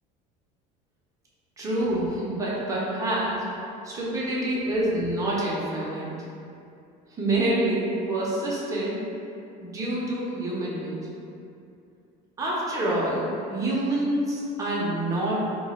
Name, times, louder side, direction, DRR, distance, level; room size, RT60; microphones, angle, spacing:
voice 1, 1.6-3.4 3.8-6.1 7.2-9.1 9.6-11.0 12.4-15.4, right 1 dB, 20° right, -6 dB, 0.6 m, -27 dB
2.8 x 2.2 x 4.2 m, 2.6 s
cardioid pair, 150°, 18 cm